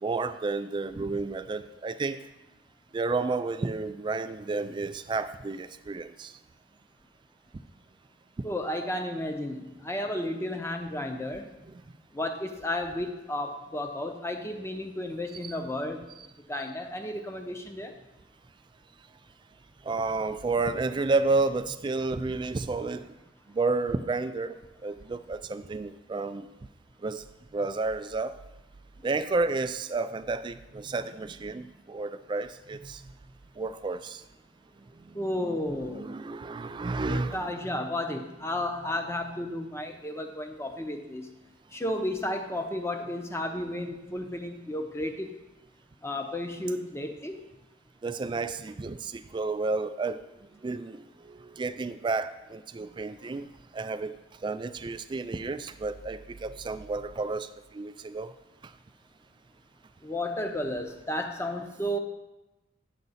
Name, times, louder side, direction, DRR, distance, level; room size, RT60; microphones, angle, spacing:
voice 1, 0.0-2.2 2.9-6.3 15.4-15.5 19.8-23.1 23.5-24.6 24.8-26.5 27.0-27.2 27.5-28.4 29.0-33.0 33.6-34.2 35.9-37.4 37.7-37.8 48.0-50.2 50.6-53.5 53.7-54.2 54.4-58.3, right 3 dB, 25° right, 12 dB, 0.3 m, -31 dB
voice 2, 8.4-11.5 12.1-16.0 16.5-17.9 35.1-36.1 36.9-41.3 41.7-45.3 46.0-47.4 60.0-62.0, left 1 dB, 15° left, 5 dB, 0.7 m, -33 dB
9.1 x 6.6 x 4.1 m, 1.0 s
head